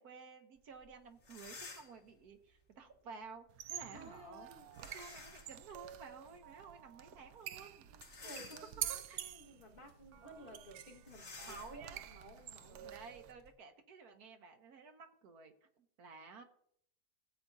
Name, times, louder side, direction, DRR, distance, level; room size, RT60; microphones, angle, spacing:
voice 1, 0.0-4.5 4.9-7.9 8.2-8.3 8.9-9.2 10.2-10.6 11.5-12.0 12.7-15.5 16.0-16.4, right 5 dB, 70° right, 5 dB, 1.4 m, -53 dB
sound 1, 0.8-0.9 1.2-2.1 4.7-5.6 6.1-6.2 7.9-9.0 9.6-9.8 10.0-10.2 11.0-13.5, left 4 dB, 60° left, 3.0 m, -53 dB
sound 2, 3.5-13.3, right 11 dB, 85° right, 1.2 m, -48 dB
voice 2, 3.9-4.8 7.9-12.9, right 1 dB, 35° left, -1 dB, 1.7 m, -55 dB
16.0 x 7.7 x 2.7 m, 0.67 s
omnidirectional pair, 1.8 m